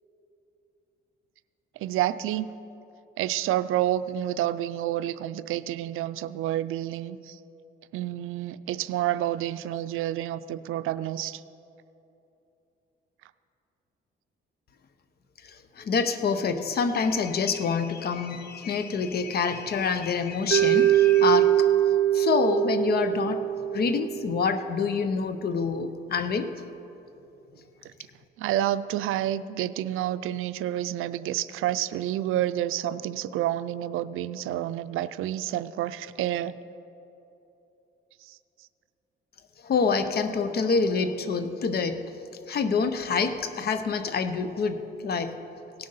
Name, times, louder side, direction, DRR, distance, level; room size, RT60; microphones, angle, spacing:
voice 1, 1.8-2.5 3.2-7.4 7.9-11.4 28.4-36.6 38.2-38.4, right 12 dB, 85° right, 14 dB, 0.4 m, -29 dB
voice 2, 15.4-21.7 22.1-23.4 23.7-26.5 39.6-42.0 42.5-45.4, left 5 dB, 50° left, 10 dB, 0.7 m, -27 dB
Mallet percussion, 20.5-24.6, right 12 dB, 60° right, 0.7 m, -22 dB
17.5 x 6.5 x 5.5 m, 2.9 s
cardioid pair, 120°, 21 cm